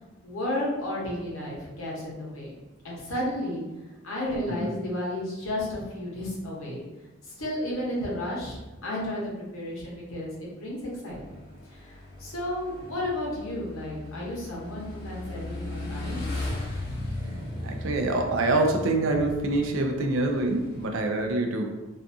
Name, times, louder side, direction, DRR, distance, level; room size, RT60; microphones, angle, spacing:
voice 1, 0.2-2.5 2.8-3.6 4.0-6.8 7.2-11.4 11.7-16.6, left 1 dB, 80° left, -4 dB, 0.8 m, -33 dB
Motorcycle / Engine, 11.1-20.9, left 2 dB, 50° left, 0.6 m, -37 dB
voice 2, 17.6-21.8, right 2 dB, 70° right, 3 dB, 0.4 m, -25 dB
2.5 x 2.3 x 2.6 m, 1.1 s
head